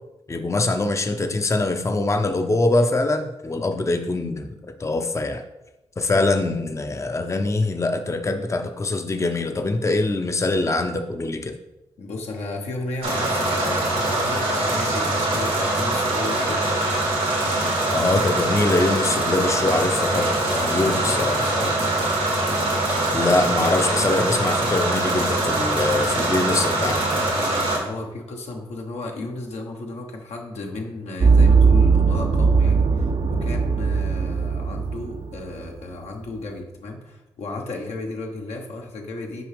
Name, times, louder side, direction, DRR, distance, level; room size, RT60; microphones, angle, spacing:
voice 1, 0.3-5.4 6.0-11.5 17.9-21.4 23.1-27.0, left 2 dB, 25° left, 6 dB, 0.5 m, -23 dB
voice 2, 12.0-16.6 20.6-21.8 27.3-39.4, left 2 dB, 80° left, 1 dB, 1.0 m, -34 dB
sound 1, 13.0-27.8, right 2 dB, 90° right, 1.7 m, -23 dB
sound 2, 31.2-35.4 35.7-35.8, right 5 dB, 50° right, 0.5 m, -18 dB
6.0 x 4.6 x 3.4 m, 0.97 s
supercardioid pair, 40°, 11 cm